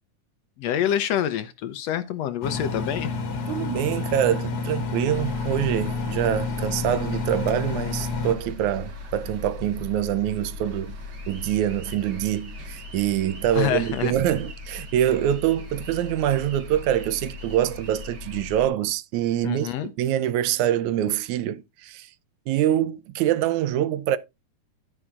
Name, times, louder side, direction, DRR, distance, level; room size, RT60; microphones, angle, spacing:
voice 1, 0.6-3.1 13.6-14.1 19.4-19.9, left 10 dB, 70° left, 1.7 m, -26 dB
Engine, 2.4-8.4, left 4 dB, 55° left, 2.0 m, -29 dB
voice 2, 3.5-11.0 11.3-19.7 20.0-22.1 22.5-24.2, right 11 dB, 80° right, 2.0 m, -25 dB
sound 1, 5.1-18.7, left 3 dB, 40° right, 1.9 m, -38 dB
11.0 x 9.6 x 2.4 m
omnidirectional pair, 3.4 m